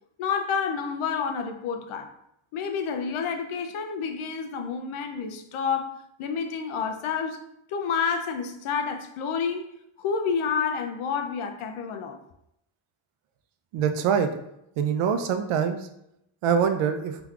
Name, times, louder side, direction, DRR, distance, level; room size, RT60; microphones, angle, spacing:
voice 1, 0.2-2.1 2.5-7.4 7.7-9.7 10.0-12.2, left 6 dB, 80° left, 0.6 m, -29 dB
voice 2, 13.7-14.3 14.8-15.9 16.4-17.2, right 7 dB, 85° right, 0.6 m, -24 dB
3.5 x 2.9 x 2.3 m
cardioid pair, 90°, 49 cm